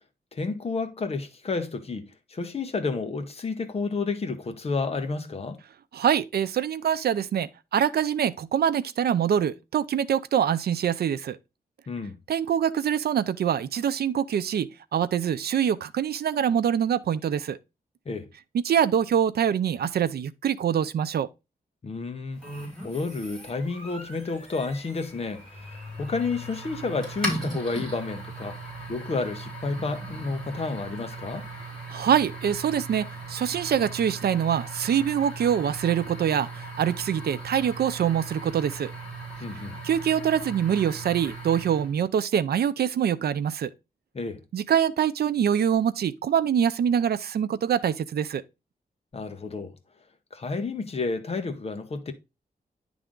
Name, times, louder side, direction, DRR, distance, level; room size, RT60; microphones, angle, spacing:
voice 1, 0.3-5.6 11.9-12.2 18.0-18.3 21.8-22.4 22.8-28.6 28.9-31.5 39.4-39.8 44.1-44.4 49.1-49.7 50.3-52.1, left 3 dB, 40° left, 1.0 m, -31 dB
voice 2, 5.9-11.4 12.3-17.6 18.5-21.3 31.9-38.9 39.8-43.7 44.5-48.4, right 9 dB, 85° right, 0.5 m, -24 dB
sound 1, 22.4-42.0, right 2 dB, ahead, 4.3 m, -38 dB
10.0 x 3.4 x 3.7 m
wide cardioid pair, 175°, 16 cm